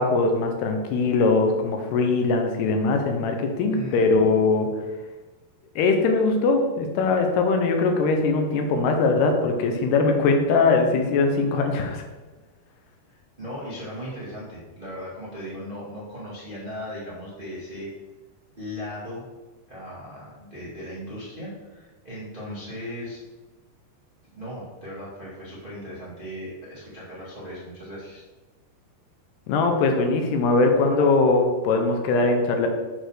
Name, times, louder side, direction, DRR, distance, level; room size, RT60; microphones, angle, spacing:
voice 1, 0.0-4.7 5.8-12.0 29.5-32.7, left 3 dB, 75° left, 4 dB, 2.8 m, -21 dB
voice 2, 3.6-4.1 13.1-17.9 18.6-19.2 19.7-23.2 24.3-28.2, equal, 25° right, -8 dB, 1.1 m, -37 dB
8.0 x 4.2 x 6.3 m, 1.2 s
omnidirectional pair, 4.9 m